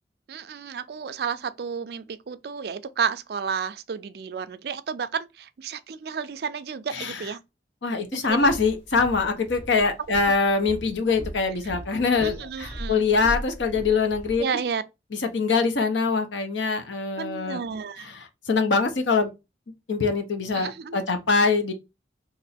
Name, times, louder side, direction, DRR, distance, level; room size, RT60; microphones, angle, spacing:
voice 1, 0.3-7.4 8.1-8.5 10.2-10.3 12.2-13.0 14.4-14.8 17.2-18.1 20.5-21.0, right 6 dB, 60° right, 0.3 m, -32 dB
voice 2, 6.9-7.2 7.8-14.4 15.3-17.6 18.0-19.3 19.9-21.7, left 4 dB, 90° left, 0.8 m, -23 dB
Walk footsteps, 8.3-14.4, equal, 30° left, 0.8 m, -39 dB
3.0 x 2.5 x 4.1 m
head